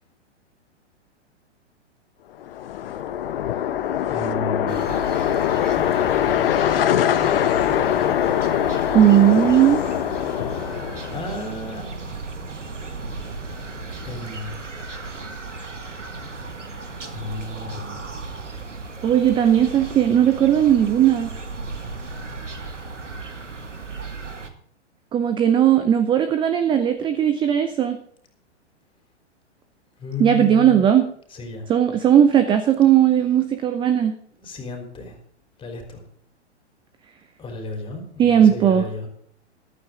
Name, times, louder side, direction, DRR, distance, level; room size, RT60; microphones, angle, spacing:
sound 1, 2.4-11.5, left 10 dB, 50° left, 1.0 m, -23 dB
voice 1, 4.1-4.9 10.5-11.8 14.0-14.6 17.1-18.1 30.0-30.8 31.3-31.7 34.4-35.2 35.6-36.0 37.4-39.1, left 2 dB, 15° left, 4 dB, 3.8 m, -33 dB
sound 2, 4.7-14.4, right 3 dB, 40° right, 4.5 m, -42 dB
sound 3, 4.7-24.5, right 3 dB, 85° right, 1.9 m, -36 dB
voice 2, 8.9-9.8 19.0-21.3 25.1-28.0 30.2-31.1 31.7-34.2 38.2-38.9, right 10 dB, 15° right, 10 dB, 0.7 m, -17 dB
14.5 x 12.5 x 3.7 m, 0.64 s
figure-of-eight pair, 110°, 36 cm